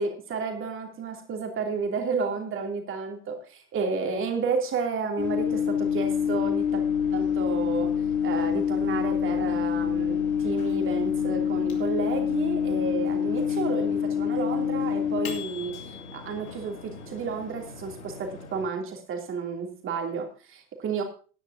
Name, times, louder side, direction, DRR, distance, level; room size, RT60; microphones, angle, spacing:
voice 1, 0.0-6.8 7.1-7.9 8.2-21.0, right 5 dB, 25° right, 3 dB, 2.9 m, -31 dB
Microwave oven, 5.2-18.6, left 8 dB, 65° left, 2.7 m, -27 dB
18.5 x 10.0 x 2.7 m, 0.38 s
figure-of-eight pair, 85°, 45 cm